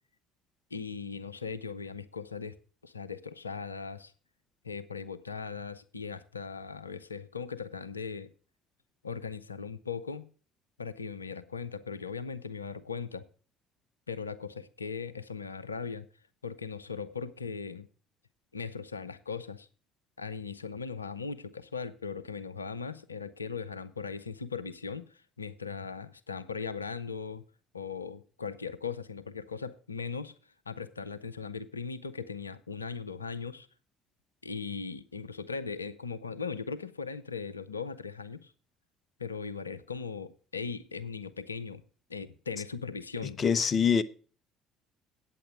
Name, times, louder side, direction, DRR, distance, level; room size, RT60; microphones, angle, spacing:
voice 1, 0.7-2.5 2.8-4.1 4.6-8.3 9.0-10.3 10.8-13.3 14.1-16.1 16.4-17.9 18.5-19.7 20.2-27.4 27.7-30.3 30.7-33.7 34.4-38.5 39.2-41.8 42.1-43.4, left 5 dB, 90° left, 0.5 m, -38 dB
voice 2, 43.2-44.0, left 7 dB, 40° left, 0.7 m, -25 dB
8.9 x 7.8 x 6.4 m
figure-of-eight pair, 55°, 0 cm